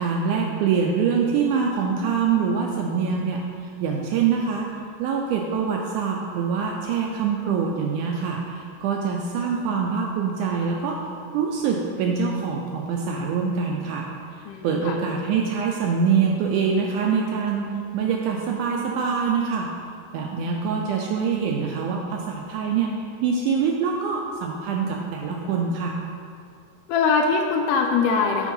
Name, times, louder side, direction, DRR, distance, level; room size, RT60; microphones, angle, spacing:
voice 1, 0.0-11.0 11.3-14.1 14.4-17.7 17.9-19.7 20.1-22.9 23.2-26.0, right 6 dB, 80° right, 0 dB, 1.8 m, -24 dB
voice 2, 14.5-15.0 26.9-28.5, left 5 dB, 80° left, 3 dB, 2.0 m, -22 dB
7.2 x 4.4 x 5.5 m, 2.3 s
omnidirectional pair, 4.0 m